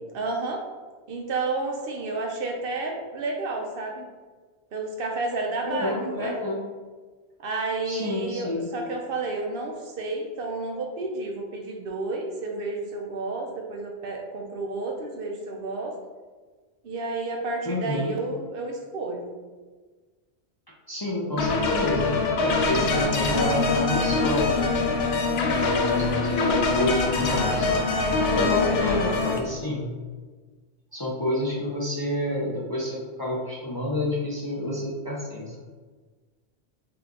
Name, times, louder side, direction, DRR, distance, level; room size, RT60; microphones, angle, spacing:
voice 1, 0.1-0.6 1.1-4.1 4.7-6.3 7.4-15.9 16.8-19.3 28.3-28.8, right 3 dB, 65° right, 1 dB, 0.8 m, -31 dB
voice 2, 5.6-6.6 7.8-8.7 17.6-18.1 20.9-24.7 25.6-27.7 28.3-29.9 30.9-35.6, left 1 dB, 30° left, -5 dB, 0.5 m, -29 dB
sound 1, 21.4-29.4, left 3 dB, 75° left, 0.8 m, -24 dB
3.5 x 2.9 x 3.7 m, 1.4 s
omnidirectional pair, 1.1 m